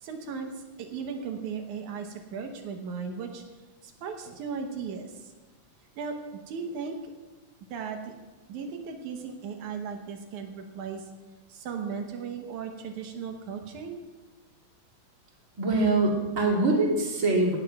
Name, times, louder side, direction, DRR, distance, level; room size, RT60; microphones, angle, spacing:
voice 1, 0.0-3.4 3.8-5.3 6.0-7.0 7.7-8.1 8.5-11.1 11.5-14.0, right 5 dB, 80° right, 4 dB, 2.4 m, -36 dB
voice 2, 15.6-17.6, right 2 dB, 30° right, -2 dB, 2.5 m, -24 dB
18.0 x 14.5 x 2.3 m, 1.2 s
omnidirectional pair, 3.4 m